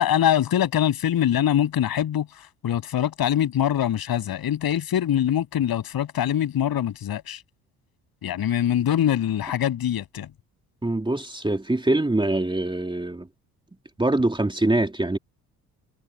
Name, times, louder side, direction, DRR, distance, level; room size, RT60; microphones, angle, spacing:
voice 1, 0.0-7.4 8.2-10.3, left 10 dB, 50° left, 7.7 m, -23 dB
voice 2, 10.8-13.3 14.0-15.2, right 2 dB, 10° right, 3.0 m, -23 dB
hypercardioid pair, 55°, 45 cm